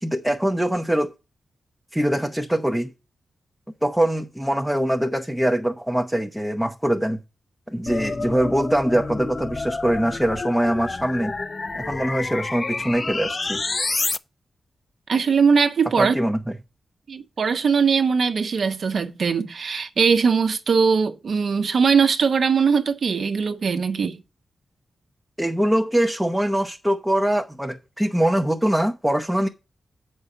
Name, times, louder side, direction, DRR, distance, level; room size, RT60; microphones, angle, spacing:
voice 1, 0.0-1.1 1.9-2.9 3.8-7.2 7.7-11.3 11.7-13.6 16.0-16.4 25.4-29.5, right 1 dB, 5° right, 0.7 m, -23 dB
sound 1, 7.9-14.2, left 3 dB, 35° left, 0.4 m, -29 dB
voice 2, 15.1-16.1 17.1-24.2, right 5 dB, 60° right, 0.9 m, -20 dB
7.9 x 5.5 x 4.8 m
wide cardioid pair, 120°, 0 cm